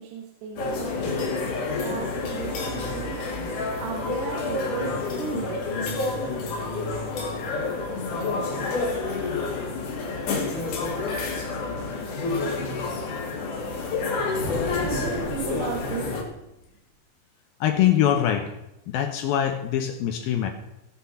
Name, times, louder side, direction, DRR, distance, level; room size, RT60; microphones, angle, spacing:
voice 1, 0.0-1.4 1.8-3.2 3.8-5.9 14.7-16.2, right 6 dB, 75° right, 1 dB, 3.3 m, -35 dB
sound 1, 0.6-16.2, left 3 dB, 55° left, 3.0 m, -29 dB
sound 2, 14.3-16.6, left 1 dB, 20° left, 2.5 m, -35 dB
voice 2, 17.6-18.5 18.9-20.5, left 10 dB, 75° left, 5 dB, 2.4 m, -23 dB
17.0 x 6.1 x 5.6 m, 0.88 s
omnidirectional pair, 4.8 m